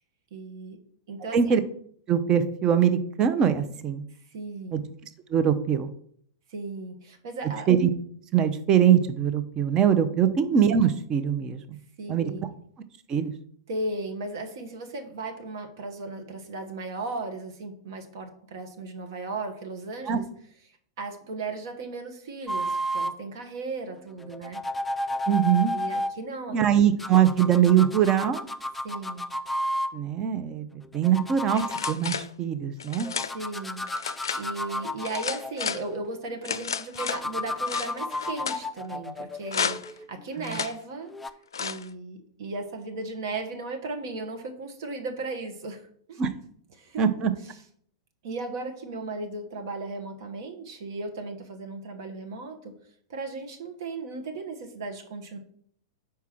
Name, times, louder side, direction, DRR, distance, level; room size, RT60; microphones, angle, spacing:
voice 1, 0.3-0.8 1.1-1.5 4.3-4.9 6.5-7.7 10.2-10.3 12.0-12.5 13.7-20.2 21.0-24.6 25.7-26.6 28.8-29.2 33.3-33.8 34.4-41.1 41.6-46.2 46.8-47.0 48.2-52.7 53.1-55.4, right 3 dB, 60° right, 4 dB, 1.1 m, -36 dB
voice 2, 2.1-4.0 4.7-4.8 5.3-5.9 7.7-7.9 8.3-11.8 12.1-12.3 13.1-13.3 20.1-20.2 25.3-25.7 26.5-28.4 29.9-33.1 40.4-40.6 46.2-46.3 47.0-47.3, right 8 dB, 30° right, 10 dB, 0.7 m, -22 dB
sound 1, 22.5-23.2 24.2-26.1 27.0-29.9 30.8-32.0 33.0-36.2 37.0-40.2 41.1-41.3, left 1 dB, 5° left, 0.4 m, -32 dB
sound 2, 31.5-32.3 32.8-33.3 33.9-34.4 35.0-35.8 36.4-37.2 37.7-38.6 39.5-40.0 40.4-40.7 41.5-41.9, left 7 dB, 80° left, 0.4 m, -32 dB
4.7 x 4.7 x 5.8 m, 0.63 s
hypercardioid pair, 105°, 2 cm